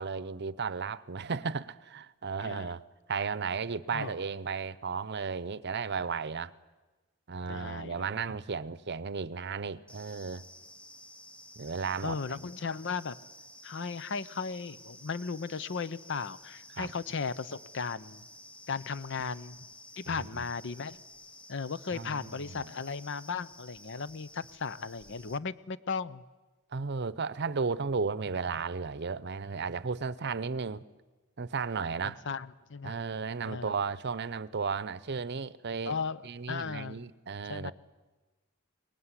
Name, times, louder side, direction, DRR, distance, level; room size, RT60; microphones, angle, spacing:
voice 1, 0.0-2.8 3.1-6.5 7.3-10.4 11.6-12.5 16.7-16.9 20.1-20.5 21.9-22.7 26.7-30.8 31.4-32.2 32.8-36.0 36.2-37.7, right 5 dB, 55° right, 0.7 m, -34 dB
voice 2, 2.4-2.7 3.9-4.1 7.5-8.1 12.0-13.2 13.6-18.2 18.7-19.6 20.0-21.0 21.5-26.2 32.3-32.9 33.5-33.8 35.9-37.0 37.5-37.7, left 5 dB, 60° left, 0.7 m, -36 dB
sound 1, 9.9-25.4, left 1 dB, 5° left, 0.8 m, -52 dB
22.5 x 19.5 x 9.8 m
head